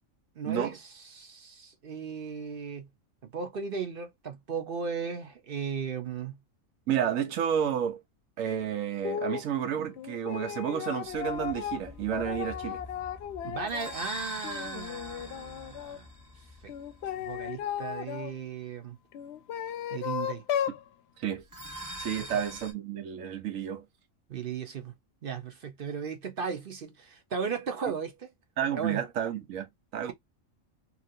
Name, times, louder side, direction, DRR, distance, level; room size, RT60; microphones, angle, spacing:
voice 1, 0.4-2.9 3.2-6.4 13.4-16.1 16.6-16.7 17.2-19.0 19.9-20.4 24.3-24.9 25.2-28.1 28.8-29.0, right 6 dB, 50° right, 0.9 m, -36 dB
voice 2, 6.9-8.0 8.4-12.8 20.7-20.8 21.2-21.4 22.0-23.8 28.6-30.1, right 9 dB, 90° right, 1.2 m, -31 dB
sound 1, 9.0-9.5 10.0-14.0 14.4-16.0 16.7-18.3 19.1-20.8, left 10 dB, 65° left, 0.7 m, -35 dB
sound 2, 11.0-17.7 21.4-22.7, equal, 15° right, 1.1 m, -44 dB
2.9 x 2.7 x 2.7 m
omnidirectional pair, 1.3 m